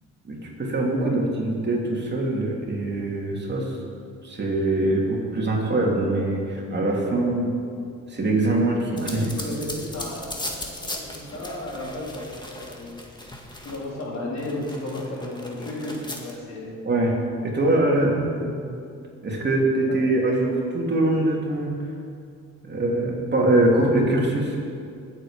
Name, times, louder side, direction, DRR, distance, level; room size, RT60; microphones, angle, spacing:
voice 1, 0.2-3.7 4.2-7.5 8.1-9.2 16.8-18.1 19.2-21.7 22.6-24.6, right 2 dB, 35° right, -2 dB, 3.0 m, -23 dB
voice 2, 8.9-13.0 13.6-16.8 18.0-18.6 19.9-20.0, left 1 dB, 65° left, -4 dB, 4.1 m, -34 dB
sound 1, 9.0-14.0 14.4-16.3, left 1 dB, 15° left, 2.1 m, -37 dB
20.5 x 8.1 x 5.2 m, 2.4 s
cardioid pair, 90°, 30 cm